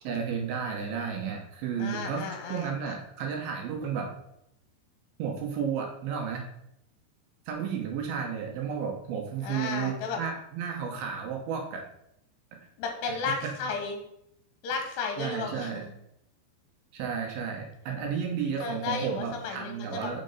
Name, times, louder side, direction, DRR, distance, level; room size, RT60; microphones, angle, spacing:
voice 1, 0.0-4.1 5.2-6.5 7.5-11.9 12.5-12.6 15.2-15.8 16.9-20.2, right 7 dB, 70° right, 1 dB, 2.5 m, -32 dB
voice 2, 1.8-3.0 9.4-10.2 12.8-14.0 14.6-15.9 18.6-20.2, left 5 dB, 75° left, 3 dB, 2.7 m, -34 dB
6.5 x 4.5 x 5.4 m, 0.77 s
omnidirectional pair, 5.2 m